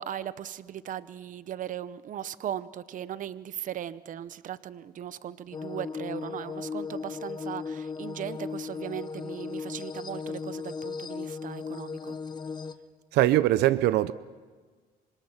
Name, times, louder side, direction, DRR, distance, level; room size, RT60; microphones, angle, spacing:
voice 1, 0.0-12.2, right 10 dB, 50° right, 0.8 m, -38 dB
sound 1, 5.5-12.7, left 5 dB, 25° left, 1.0 m, -36 dB
voice 2, 13.1-14.1, right 15 dB, 80° right, 0.7 m, -22 dB
26.5 x 25.5 x 5.9 m
cardioid pair, 110°, 17 cm